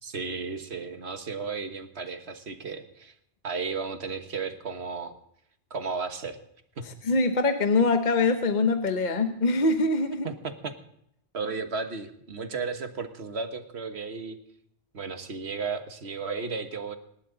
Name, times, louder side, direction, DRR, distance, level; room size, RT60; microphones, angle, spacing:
voice 1, 0.0-3.1 3.4-5.1 5.7-6.4 6.8-6.9 10.2-10.7 11.3-14.4 14.9-17.0, right 4 dB, 70° right, 7 dB, 1.6 m, -34 dB
voice 2, 7.0-10.3, left 3 dB, 45° left, 7 dB, 1.1 m, -23 dB
27.0 x 12.0 x 4.0 m, 0.73 s
omnidirectional pair, 1.1 m